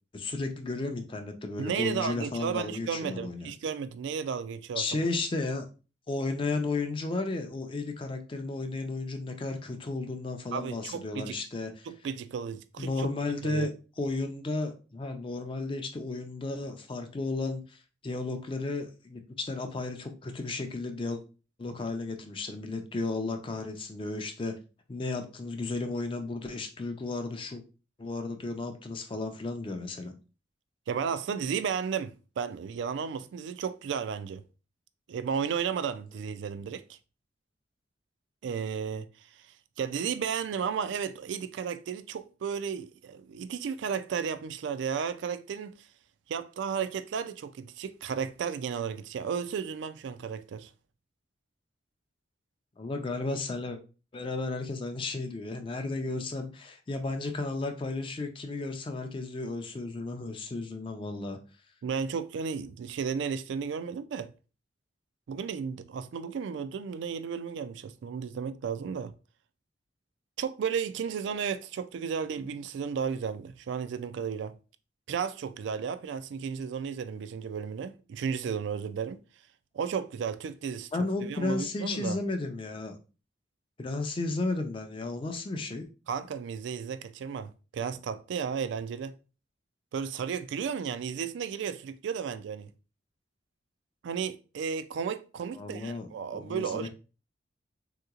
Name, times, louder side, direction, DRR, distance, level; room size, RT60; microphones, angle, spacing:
voice 1, 0.1-3.5 4.8-5.6 6.1-11.9 12.8-13.7 14.0-21.2 21.6-24.5 24.9-27.6 28.0-30.1 52.8-53.8 54.1-61.4 80.9-83.0 83.8-85.9 95.6-96.9, left 3 dB, 25° left, 0.4 m, -33 dB
voice 2, 1.6-4.9 10.5-11.4 11.8-13.1 13.4-13.7 30.9-34.4 35.1-37.0 38.4-39.1 39.4-39.5 39.8-45.9 46.3-50.7 61.8-64.3 65.3-69.1 70.4-74.6 75.1-79.2 79.7-80.9 81.2-82.2 86.1-89.2 89.9-92.7 94.0-96.9, right 6 dB, 70° right, 0.3 m, -33 dB
3.6 x 2.9 x 2.3 m
head